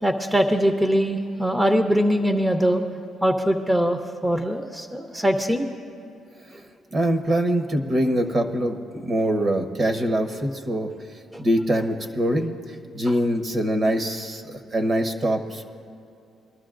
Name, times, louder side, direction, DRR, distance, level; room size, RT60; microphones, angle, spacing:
voice 1, 0.0-2.8 3.2-5.7 11.3-11.4, equal, 10° right, 5 dB, 0.7 m, -22 dB
voice 2, 6.9-10.9 11.4-12.5 12.9-14.4 14.7-15.7, right 1 dB, 40° right, 6 dB, 1.1 m, -23 dB
22.5 x 12.5 x 2.5 m, 2.6 s
cardioid pair, 90°, 0 cm